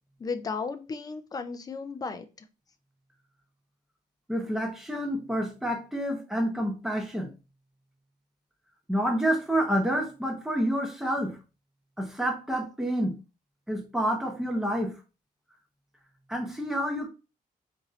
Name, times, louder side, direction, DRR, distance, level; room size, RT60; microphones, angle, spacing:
voice 1, 0.2-2.3, left 4 dB, 25° left, 0.4 m, -34 dB
voice 2, 4.3-7.3 8.9-11.4 12.0-13.2 13.7-15.0 16.3-17.1, equal, 5° right, 0.8 m, -28 dB
4.1 x 2.6 x 3.0 m
cardioid pair, 145°, 15 cm